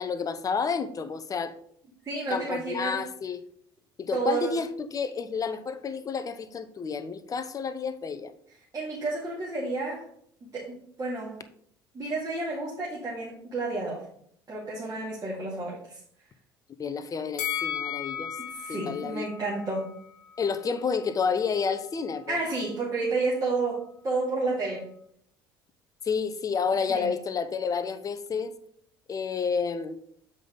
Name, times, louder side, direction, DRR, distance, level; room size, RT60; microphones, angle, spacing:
voice 1, 0.0-1.5 2.3-3.4 4.0-8.3 16.8-18.4 18.7-19.3 20.4-22.4 26.0-28.5 29.1-30.0, left 5 dB, 30° left, 0.7 m, -30 dB
voice 2, 2.0-3.0 4.1-4.5 8.7-10.0 10.4-11.4 11.9-14.0 14.5-16.0 18.5-19.9 22.3-24.9 26.9-27.1, right 3 dB, 35° right, 2.3 m, -31 dB
Bell, 17.4-20.6 20.9-21.0, left 10 dB, 60° left, 0.9 m, -35 dB
7.5 x 5.2 x 3.9 m
figure-of-eight pair, 60°, 11 cm